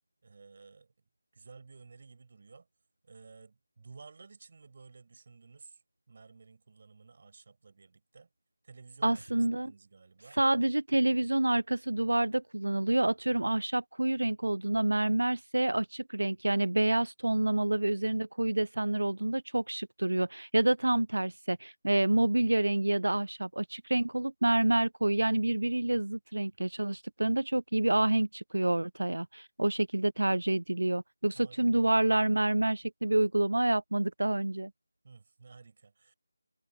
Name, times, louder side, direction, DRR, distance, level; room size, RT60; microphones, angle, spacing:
voice 1, 0.2-0.9 1.3-2.7 3.0-5.8 6.1-8.3 8.6-10.4 31.3-31.8 35.0-36.1, right 4 dB, 40° right, 6.5 m, -54 dB
voice 2, 9.0-9.7 10.3-34.7, right 1 dB, 70° right, 0.3 m, -28 dB
figure-of-eight pair, 160°, 0 cm